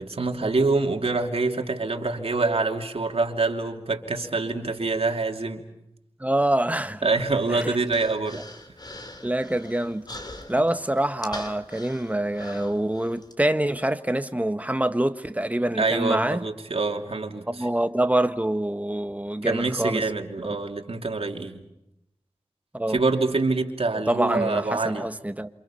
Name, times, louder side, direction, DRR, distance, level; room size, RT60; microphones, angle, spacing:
voice 1, 0.0-5.6 7.0-8.4 15.7-17.7 19.4-21.6 22.9-25.1, right 3 dB, 75° right, 2.8 m, -26 dB
voice 2, 6.2-7.1 7.5-7.8 8.3-8.4 9.2-10.0 10.5-16.4 17.5-20.0 22.7-23.0 24.1-25.5, right 1 dB, 15° right, 1.5 m, -25 dB
Human voice, 7.1-13.3, left 1 dB, 40° left, 3.6 m, -43 dB
28.5 x 27.5 x 5.8 m
wide cardioid pair, 65°, 10 cm